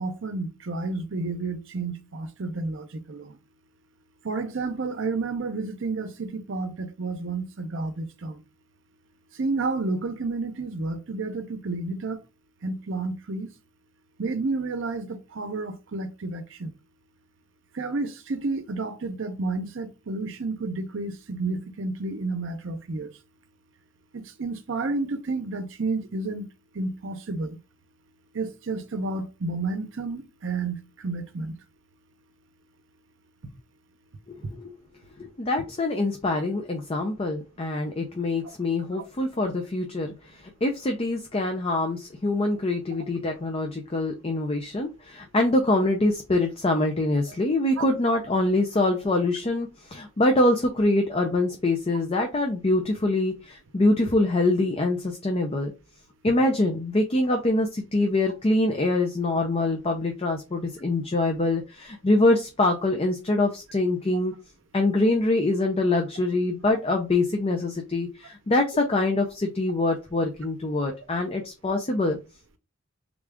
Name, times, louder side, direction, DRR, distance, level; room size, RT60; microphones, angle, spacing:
voice 1, 0.0-3.4 4.2-8.4 9.4-12.2 12.6-13.5 14.2-16.7 17.7-23.1 24.1-26.4 26.7-27.6 28.3-31.5 66.7-66.8, right 3 dB, 65° right, 0.6 m, -31 dB
voice 2, 34.3-34.7 35.2-55.7 56.2-64.3 64.7-72.2, left 2 dB, 30° left, 0.5 m, -24 dB
3.7 x 2.4 x 3.4 m
head